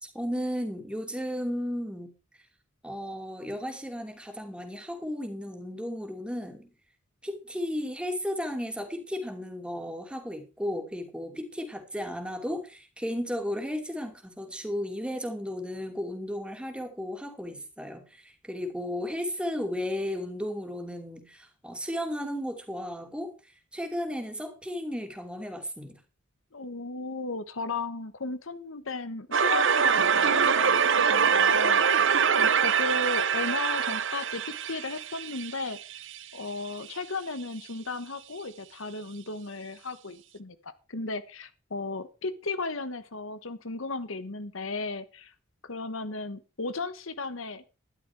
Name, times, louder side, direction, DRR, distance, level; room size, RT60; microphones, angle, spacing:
voice 1, 0.0-2.1 2.8-6.7 7.2-23.3 23.7-26.0, equal, 5° right, 2.5 m, -34 dB
voice 2, 26.5-32.1 32.4-35.8 36.3-45.3 45.6-47.6, left 3 dB, 70° left, 1.2 m, -35 dB
sound 1, 29.3-36.2, right 6 dB, 60° right, 0.9 m, -24 dB
13.0 x 11.0 x 4.8 m
head